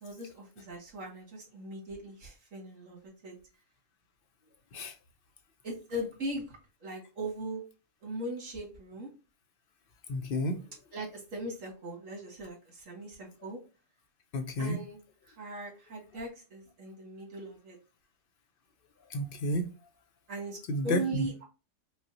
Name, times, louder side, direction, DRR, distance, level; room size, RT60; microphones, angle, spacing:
voice 1, 0.0-3.3 5.6-7.6 8.0-9.1 10.9-13.6 14.6-15.0 15.2-17.8 20.3-20.6 20.8-21.4, right 1 dB, 80° right, 2.0 m, -39 dB
voice 2, 10.1-10.6 14.3-14.8 19.1-19.7 20.7-21.3, equal, 60° left, 0.7 m, -31 dB
5.3 x 2.1 x 2.7 m
omnidirectional pair, 1.3 m